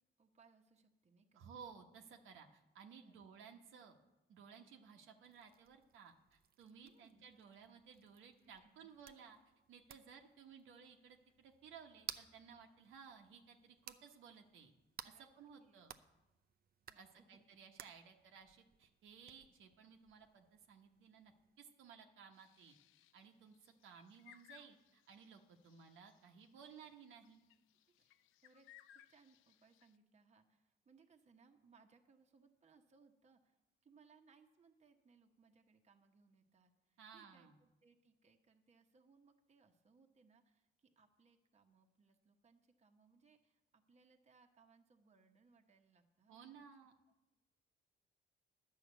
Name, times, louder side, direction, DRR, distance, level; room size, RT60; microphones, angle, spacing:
voice 1, 0.2-1.5 3.0-3.3 6.8-7.3 8.4-8.9 15.0-15.3 15.6-15.8 16.9-17.5 27.9-46.4, right 5 dB, 35° right, 4 dB, 1.0 m, -70 dB
voice 2, 1.3-4.0 4.3-9.4 9.7-14.7 15.0-15.9 16.9-21.3 21.6-22.8 23.1-27.4 37.0-37.5 46.3-46.9, right 6 dB, 85° right, 3 dB, 1.0 m, -58 dB
sound 1, 5.2-21.6, right 8 dB, 50° right, 0.5 m, -58 dB
sound 2, 22.3-30.0, left 12 dB, 85° left, 0.4 m, -66 dB
11.0 x 5.6 x 8.1 m, 0.99 s
cardioid pair, 90°, 20 cm